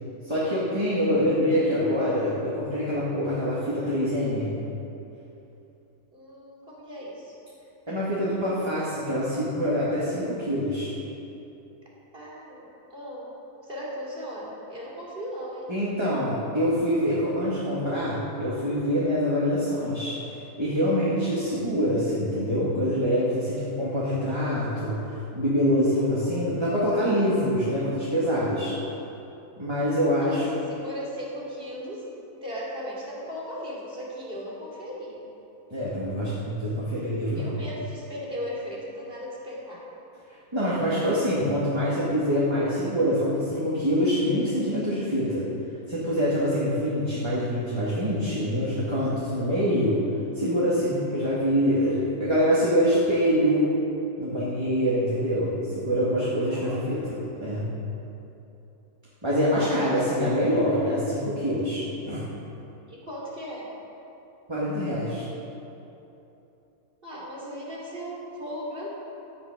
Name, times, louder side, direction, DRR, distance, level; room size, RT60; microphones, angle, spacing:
voice 1, 0.2-4.5 7.9-10.9 15.7-20.1 20.6-28.7 29.6-30.5 35.7-37.5 40.5-45.5 45.9-50.0 50.3-53.7 54.2-57.7 59.2-62.2 64.5-65.3, equal, 15° right, -8 dB, 2.1 m, -25 dB
voice 2, 6.1-7.3 12.1-13.3 13.6-15.7 25.9-26.5 30.2-30.4 30.7-35.2 37.3-39.8 56.5-57.1 59.6-59.9 62.9-63.7 67.0-68.9, equal, 35° right, -5 dB, 3.3 m, -37 dB
16.5 x 9.7 x 5.2 m, 2.9 s
omnidirectional pair, 1.7 m